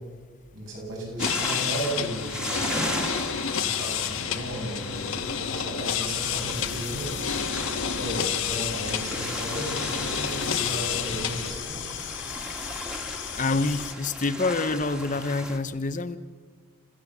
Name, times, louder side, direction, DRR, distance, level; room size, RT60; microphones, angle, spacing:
voice 1, 0.5-3.0 3.6-7.1 7.7-11.8, right 1 dB, 65° right, 7.7 m, -35 dB
sound 1, 1.2-11.5, left 7 dB, 80° left, 1.4 m, -30 dB
sound 2, 1.2-15.6, equal, 5° right, 1.7 m, -37 dB
sound 3, 6.2-13.9, left 8 dB, 65° left, 1.8 m, -36 dB
voice 2, 13.3-16.2, left 3 dB, 40° left, 0.8 m, -27 dB
30.0 x 15.5 x 7.3 m
head